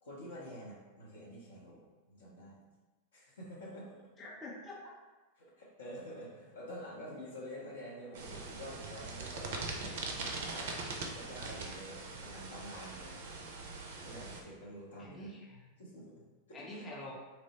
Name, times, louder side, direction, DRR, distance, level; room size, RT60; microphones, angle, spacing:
voice 1, 0.0-2.6 3.1-4.1 5.4-10.4 11.1-13.2 14.0-15.3 15.8-16.7, equal, 65° left, -4 dB, 0.7 m, -48 dB
voice 2, 4.2-4.8 15.0-15.7 16.5-17.1, left 1 dB, 20° left, -4 dB, 0.5 m, -46 dB
sound 1, 8.1-14.4, right 3 dB, 55° right, 0.4 m, -42 dB
3.0 x 2.0 x 2.8 m, 1.2 s
figure-of-eight pair, 90°, 0 cm